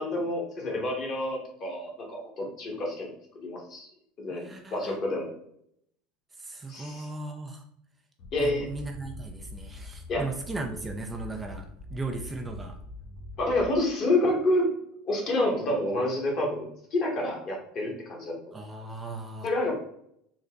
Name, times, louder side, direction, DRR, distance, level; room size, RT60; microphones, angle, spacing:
voice 1, 0.0-3.1 3.3-3.9 4.2-4.5 4.7-5.3 6.7-7.1 8.3-8.7 10.1-10.2 13.4-14.7 15.1-18.4 19.4-19.7, left 1 dB, 45° left, 0 dB, 1.4 m, -28 dB
voice 2, 4.3-5.0 6.4-7.6 8.4-12.8 18.5-19.5, right 2 dB, 20° right, 3 dB, 0.5 m, -37 dB
sound 1, 8.2-14.0, left 2 dB, 65° left, 1.0 m, -43 dB
3.9 x 2.1 x 3.7 m, 0.72 s
hypercardioid pair, 90°, 0 cm